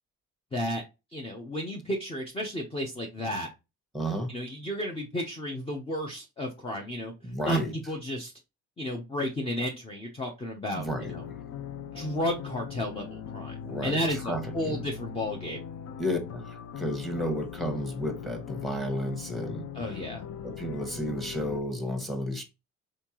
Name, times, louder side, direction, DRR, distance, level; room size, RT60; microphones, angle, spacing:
voice 1, 0.5-0.8 1.1-3.5 4.3-7.1 7.5-7.6 7.9-8.3 8.8-11.2 11.9-13.6 13.8-15.6 19.7-20.2, left 1 dB, 15° left, 0.8 m, -32 dB
voice 2, 3.9-4.3 7.2-7.7 10.7-11.4 13.6-14.8 16.0-19.7 20.4-22.4, equal, ahead, 1.3 m, -32 dB
sound 1, 10.9-21.6, left 8 dB, 50° left, 0.5 m, -40 dB
4.3 x 3.7 x 2.9 m
cardioid pair, 110°, 32 cm